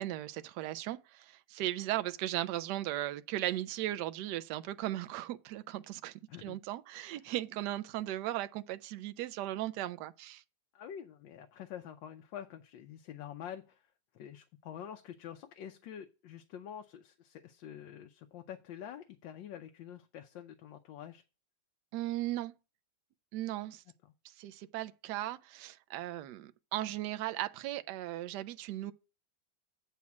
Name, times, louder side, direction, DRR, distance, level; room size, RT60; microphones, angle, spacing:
voice 1, 0.0-6.1 6.4-10.4 21.9-22.5 23.3-23.8 24.4-28.9, right 14 dB, 75° right, 1.1 m, -37 dB
voice 2, 10.7-21.2 24.0-24.1, left 9 dB, 85° left, 1.4 m, -47 dB
8.4 x 4.3 x 5.8 m
omnidirectional pair, 2.0 m